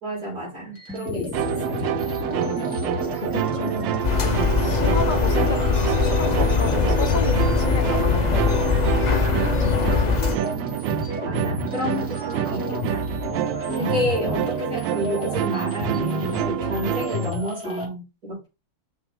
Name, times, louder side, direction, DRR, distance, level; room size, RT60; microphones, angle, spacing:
voice 1, 0.0-2.0 10.7-11.0 11.2-13.1 13.8-18.5, equal, 50° right, 4.9 m, -30 dB
sound 1, 0.7-17.9, left 4 dB, 5° right, 3.3 m, -32 dB
sound 2, 1.3-17.3, right 12 dB, 80° right, 1.3 m, -27 dB
voice 2, 2.4-2.7 3.1-4.0 4.6-10.2 13.8-14.1, left 3 dB, 30° left, 1.1 m, -32 dB
sound 3, 4.0-10.4, left 6 dB, 75° left, 0.4 m, -21 dB
6.4 x 5.8 x 3.7 m
omnidirectional pair, 2.0 m